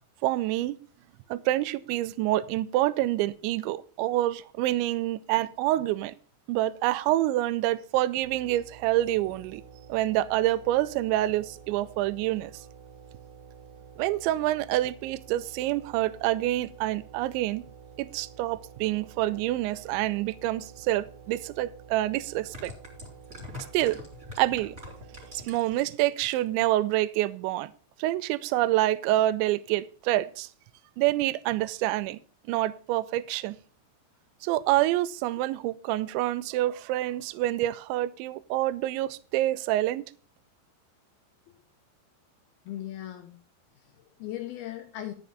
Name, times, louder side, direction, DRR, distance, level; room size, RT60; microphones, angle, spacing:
voice 1, 0.2-0.8 1.3-6.1 6.5-9.6 9.9-12.6 14.0-17.7 18.0-22.7 23.7-24.0 24.4-24.8 25.3-27.7 28.0-30.5 31.0-32.2 32.5-33.6 34.4-40.0, right 15 dB, 80° right, 2.9 m, -27 dB
sound 1, 8.2-25.4, right 7 dB, 55° right, 3.0 m, -50 dB
sound 2, 21.3-21.4 22.3-25.8 26.1-26.6 26.9-27.0, left 2 dB, 20° right, 3.8 m, -43 dB
voice 2, 42.7-43.4 43.8-45.1, left 12 dB, 75° left, 2.3 m, -38 dB
12.0 x 7.1 x 5.3 m
omnidirectional pair, 5.4 m